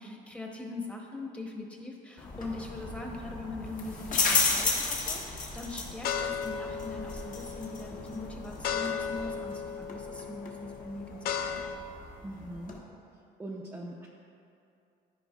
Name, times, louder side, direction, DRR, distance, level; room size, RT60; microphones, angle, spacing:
voice 1, 0.0-11.8, left 2 dB, 5° left, 0 dB, 1.0 m, -41 dB
sound 1, 2.2-12.8, left 4 dB, 50° left, 1.3 m, -34 dB
sound 2, 4.4-4.9 5.4-11.8, left 7 dB, 65° left, 0.5 m, -36 dB
voice 2, 12.2-12.8 13.4-14.1, right 1 dB, 10° right, -3 dB, 0.6 m, -41 dB
13.0 x 5.0 x 2.4 m, 2.6 s
cardioid pair, 110°, 17 cm